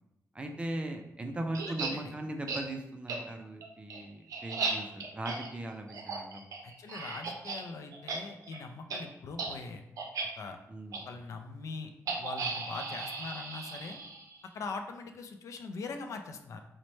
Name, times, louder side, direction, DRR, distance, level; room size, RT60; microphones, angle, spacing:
voice 1, 0.3-6.4 10.7-11.0, right 1 dB, 20° right, 4 dB, 0.3 m, -39 dB
sound 1, 1.5-1.9 2.5-2.6 3.1-3.2 3.6-7.6 7.9-8.2 8.4-8.6 8.9-9.0 9.3-9.5 10.0-10.3 10.9-11.0 12.1-14.4, right 4 dB, 80° right, 0.5 m, -36 dB
voice 2, 1.7-2.1 6.6-9.8 10.4-10.6 11.1-11.9 12.2-14.0 14.5-16.6, left 4 dB, 70° left, 6 dB, 0.3 m, -42 dB
4.0 x 2.1 x 3.1 m, 0.87 s
wide cardioid pair, 145°, 6 cm